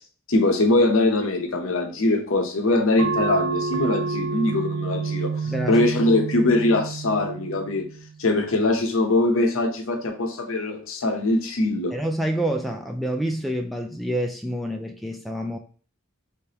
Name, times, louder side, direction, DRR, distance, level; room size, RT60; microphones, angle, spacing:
voice 1, 0.3-7.9 8.2-12.0, left 2 dB, 70° left, 4 dB, 0.8 m, -22 dB
sound 1, 3.0-8.1, right 4 dB, 65° right, 0.4 m, -29 dB
voice 2, 5.5-5.8 11.9-15.6, right 1 dB, ahead, 2 dB, 0.3 m, -27 dB
3.4 x 3.3 x 2.8 m, 0.40 s
head